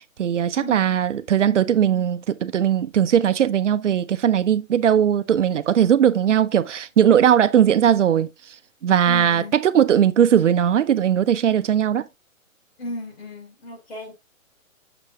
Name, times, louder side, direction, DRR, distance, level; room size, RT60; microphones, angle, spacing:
voice 1, 0.2-8.3 8.8-12.0, right 9 dB, 65° right, 0.6 m, -19 dB
voice 2, 9.0-9.6 12.8-14.1, left 1 dB, 45° left, 2.9 m, -34 dB
6.8 x 5.4 x 2.8 m
hypercardioid pair, 175°, 41 cm